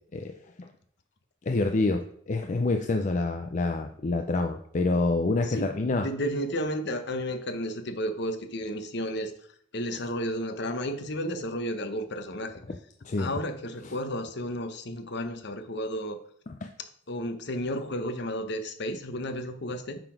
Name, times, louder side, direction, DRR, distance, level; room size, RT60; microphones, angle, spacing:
voice 1, 0.1-0.7 1.5-6.1 13.0-13.3 16.5-16.7, left 3 dB, 40° left, 5 dB, 0.5 m, -27 dB
voice 2, 5.4-9.3 9.7-12.5 13.2-16.2 17.1-20.0, equal, 60° left, 7 dB, 1.0 m, -32 dB
9.0 x 4.0 x 5.1 m, 0.64 s
head